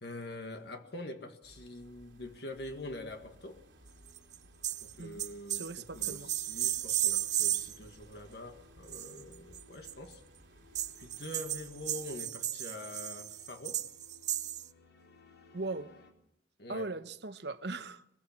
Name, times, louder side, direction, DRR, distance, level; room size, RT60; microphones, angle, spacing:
voice 1, 0.0-3.6 4.8-5.6 5.9-10.2 11.0-13.9 16.6-16.9, left 1 dB, 60° left, 1.7 m, -45 dB
sound 1, 1.4-12.2, right 1 dB, 80° right, 2.6 m, -59 dB
sound 2, 2.7-16.1, left 5 dB, 80° left, 4.2 m, -63 dB
sound 3, 4.2-4.4 4.6-4.9 5.2-7.8 8.9-9.9 10.7-14.7, right 12 dB, 40° right, 0.7 m, -34 dB
voice 2, 5.5-6.3 15.5-15.9 16.7-18.0, right 2 dB, 60° right, 1.0 m, -39 dB
22.0 x 21.0 x 6.0 m
head